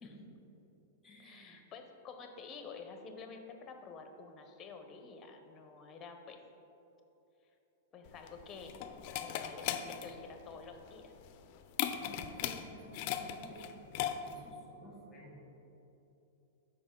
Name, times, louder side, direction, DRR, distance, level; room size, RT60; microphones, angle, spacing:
voice 1, 0.0-0.3 1.0-1.7 12.0-13.6 14.2-15.5, equal, 5° left, -2 dB, 1.7 m, -53 dB
voice 2, 1.2-6.4 7.9-8.8 9.2-11.1, left 5 dB, 20° left, 6 dB, 0.8 m, -49 dB
sound 1, 8.1-14.5, left 10 dB, 45° left, 0.4 m, -39 dB
11.5 x 4.9 x 3.7 m, 3.0 s
supercardioid pair, 150°, 0 cm